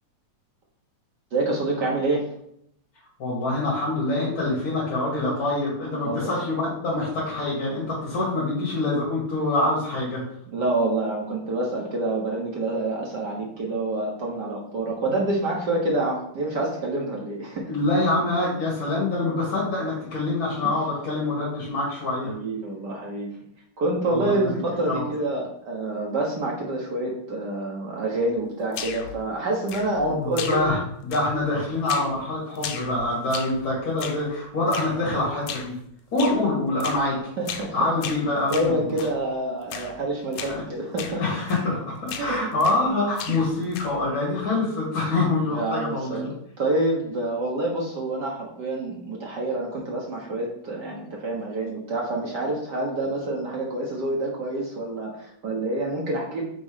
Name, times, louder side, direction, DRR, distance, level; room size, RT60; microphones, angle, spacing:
voice 1, 1.3-2.3 6.0-6.4 10.5-17.7 22.2-23.3 23.8-30.7 36.1-36.4 37.4-37.9 38.5-41.2 42.2-42.5 45.5-46.3 46.6-56.4, right 2 dB, 65° right, -2 dB, 1.0 m, -27 dB
voice 2, 3.2-10.2 17.7-22.3 24.1-24.4 24.9-25.0 29.9-35.8 36.1-37.2 37.7-38.9 40.4-40.6 41.2-46.3, left 2 dB, 45° left, -6 dB, 2.8 m, -25 dB
sound 1, 28.7-29.2 29.7-30.1 30.4-30.8 31.1-31.5 31.9-32.2 32.6-33.6 34.0-34.3 34.7-35.0 35.5-35.8 36.2-36.4 36.8-37.1 37.5-37.7 38.0-39.2 39.7-40.0 40.3-40.6 41.0-41.2 41.5-41.8 42.1-42.9 43.2-44.1, left 7 dB, 85° left, 2.2 m, -36 dB
6.0 x 4.2 x 5.0 m, 0.71 s
omnidirectional pair, 3.4 m